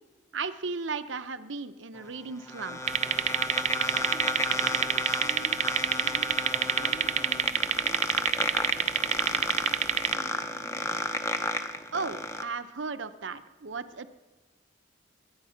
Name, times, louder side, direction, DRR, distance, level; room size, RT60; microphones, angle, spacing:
voice 1, 0.3-2.8 11.9-14.1, right 4 dB, 80° right, 11 dB, 0.8 m, -35 dB
sound 1, 2.0-12.4, left 2 dB, 15° left, 0.7 m, -33 dB
sound 2, 2.9-10.1, right 8 dB, 35° right, 0.5 m, -27 dB
voice 2, 3.9-8.0 8.4-10.8, right 1 dB, 70° left, 1 dB, 3.1 m, -48 dB
23.0 x 10.5 x 5.8 m, 1.2 s
head